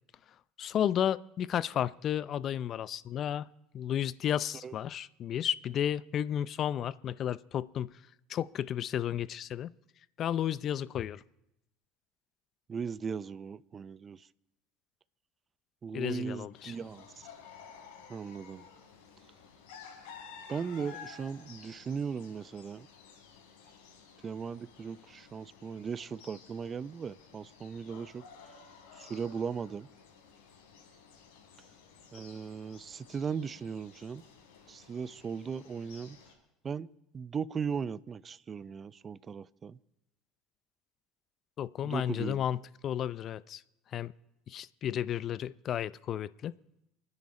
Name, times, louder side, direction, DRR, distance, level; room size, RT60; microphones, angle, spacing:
voice 1, 0.6-3.5 3.7-7.9 8.3-9.7 10.2-11.2 15.9-16.7 41.6-43.6 43.9-44.1 44.5-46.5, left 10 dB, 50° left, 0.5 m, -32 dB
voice 2, 12.7-14.3 15.8-17.3 18.1-18.7 20.5-22.9 24.2-28.3 29.0-29.9 32.1-34.2 34.7-36.2 36.6-36.9 37.1-39.8 41.8-42.5, right 6 dB, 30° right, 0.5 m, -38 dB
sound 1, 16.5-36.3, left 6 dB, 80° left, 4.5 m, -53 dB
29.0 x 9.9 x 4.3 m
supercardioid pair, 90°, 0 cm